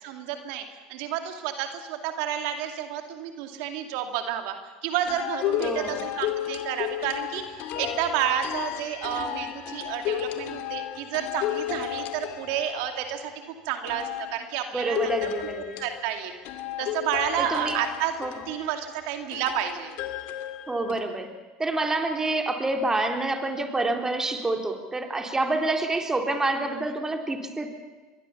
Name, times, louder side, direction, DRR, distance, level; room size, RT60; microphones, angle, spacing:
voice 1, 0.0-4.6 4.8-13.3 13.7-15.5 15.8-16.3 16.8-18.1 18.5-19.9, right 10 dB, 70° right, 6 dB, 2.4 m, -30 dB
sound 1, 5.1-13.3 13.9-21.0, left 12 dB, 65° left, 2.3 m, -33 dB
voice 2, 5.6-6.0 14.7-15.8 16.8-16.9 17.4-17.8 18.2-18.4 20.7-21.3 21.6-27.7, right 2 dB, 15° right, 4 dB, 3.5 m, -27 dB
26.0 x 22.0 x 7.2 m, 1.3 s
hypercardioid pair, 90°, 3 cm